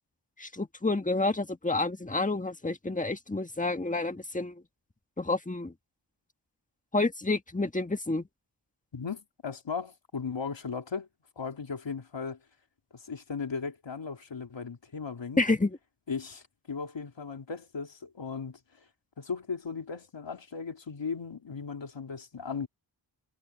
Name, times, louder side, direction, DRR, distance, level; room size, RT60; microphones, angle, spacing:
voice 1, 0.4-4.6 5.2-5.7 6.9-8.3 15.4-15.8, left 2 dB, 15° left, 1.5 m, -29 dB
voice 2, 8.9-11.1 11.3-12.4 12.9-15.4 16.1-18.6 19.2-22.7, left 5 dB, 85° left, 3.4 m, -37 dB
wide cardioid pair, 90°, 44 cm